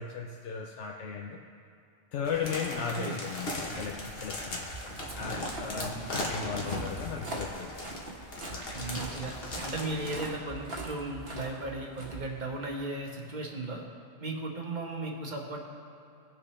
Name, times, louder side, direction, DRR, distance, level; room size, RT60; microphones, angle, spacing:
voice 1, 0.0-1.4 2.1-4.7 5.1-7.9 8.5-8.7, left 6 dB, 85° left, 1 dB, 0.9 m, -36 dB
sound 1, 2.3-10.2, left 1 dB, 55° left, 1.4 m, -38 dB
Walk footsteps, 4.5-12.8, right 2 dB, 60° right, 1.6 m, -43 dB
voice 2, 5.1-6.1 8.7-9.3 9.6-13.8 14.2-15.6, right 2 dB, 40° right, 0 dB, 1.3 m, -36 dB
17.5 x 5.9 x 3.2 m, 2.6 s
omnidirectional pair, 1.2 m